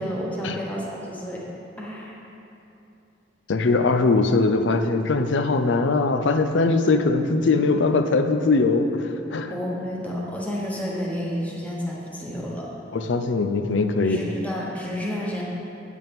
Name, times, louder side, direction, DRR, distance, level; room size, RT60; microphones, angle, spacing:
voice 1, 0.0-1.4 1.8-2.1 9.5-12.7 14.0-15.4, equal, 10° left, -4 dB, 1.2 m, -30 dB
voice 2, 3.5-9.5 12.9-14.3, left 3 dB, 75° left, 8 dB, 0.5 m, -21 dB
9.0 x 8.3 x 3.5 m, 2.7 s
head